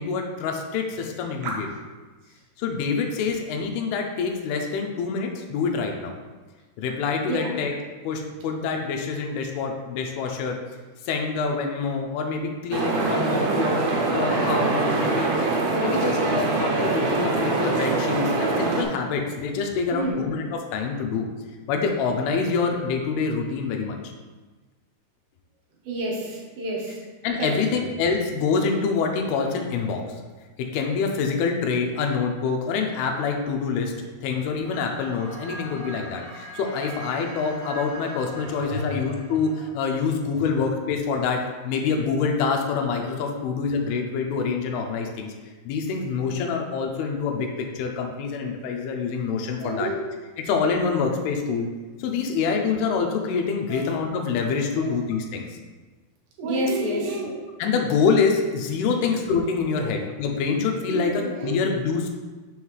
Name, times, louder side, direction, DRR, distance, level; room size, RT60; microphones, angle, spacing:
voice 1, 0.0-1.7 2.6-6.1 6.8-7.7 8.0-10.6 11.1-15.3 15.8-21.3 21.7-24.0 27.2-30.0 30.6-33.9 34.2-41.4 41.6-45.3 45.7-47.5 47.8-49.9 50.4-51.7 52.0-55.4 57.6-62.1, left 5 dB, 85° left, 2 dB, 2.6 m, -26 dB
voice 2, 7.3-7.6 19.9-20.3 25.9-27.0 27.4-27.5 33.8-34.0 38.7-39.0 49.6-50.1 53.7-54.0 54.8-55.0 56.4-57.4 59.0-59.1 59.8-59.9 60.8-61.6, right 1 dB, 70° right, -2 dB, 2.8 m, -30 dB
sound 1, 12.7-18.8, right 3 dB, 90° right, 2.9 m, -23 dB
sound 2, 34.6-39.7, right 1 dB, 55° right, 2.4 m, -40 dB
6.5 x 5.5 x 3.1 m, 1.3 s
omnidirectional pair, 4.6 m